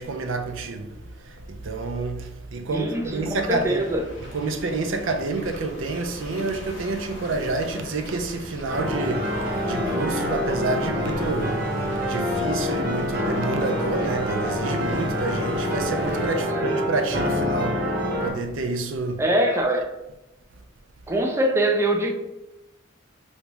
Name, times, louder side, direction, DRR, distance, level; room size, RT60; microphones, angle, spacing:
voice 1, 0.0-3.8 4.2-11.7 12.1-18.0 18.2-19.2, right 3 dB, 80° right, 0.5 m, -28 dB
sound 1, 2.7-16.3, equal, 65° left, 0.8 m, -41 dB
voice 2, 2.7-4.0 16.4-16.7 19.2-20.0 21.1-22.1, right 1 dB, 15° right, 0.4 m, -23 dB
sound 2, 8.7-18.3, left 1 dB, 50° right, 0.9 m, -26 dB
3.4 x 2.7 x 3.0 m
head